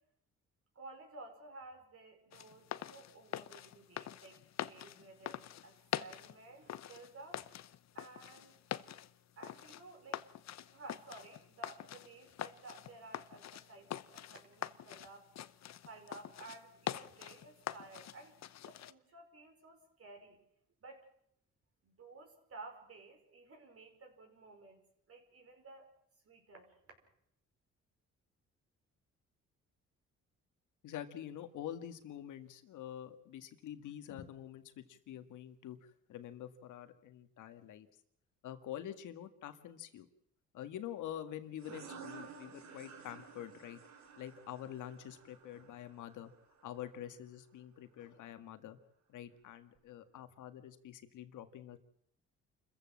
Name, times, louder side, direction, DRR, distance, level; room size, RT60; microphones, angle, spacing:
voice 1, 0.8-7.5 7.9-8.6 9.4-10.2 10.7-15.3 15.9-18.4 18.7-20.4 20.8-21.0 21.8-24.8 25.1-25.9 26.2-26.7, right 3 dB, 50° right, 3 dB, 5.4 m, -54 dB
sound 1, 2.3-18.9, left 11 dB, 60° left, 0.9 m, -45 dB
voice 2, 30.8-37.9 38.4-40.1 40.5-43.8 44.2-46.3 46.6-48.8 49.1-51.8, left 11 dB, 80° left, 9 dB, 2.0 m, -46 dB
sound 2, 41.6-46.9, right 6 dB, 65° right, 3.3 m, -53 dB
28.0 x 15.0 x 7.5 m, 0.73 s
cardioid pair, 90°, 30 cm